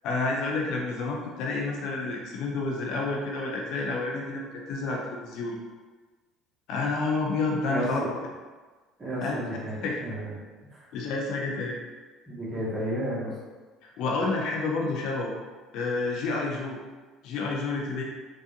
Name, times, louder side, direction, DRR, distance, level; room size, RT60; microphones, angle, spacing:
voice 1, 0.0-4.4 4.7-5.6 6.7-8.0 9.2-9.4 9.8-10.0 10.9-11.8 13.8-15.3 15.7-16.8 17.2-18.0, left 3 dB, 55° left, -1 dB, 0.5 m, -29 dB
voice 2, 7.7-8.1 9.0-10.3 10.7-10.9 12.3-13.3, equal, 25° right, -7 dB, 1.4 m, -32 dB
4.6 x 2.4 x 2.5 m, 1.3 s
figure-of-eight pair, 55°, 0 cm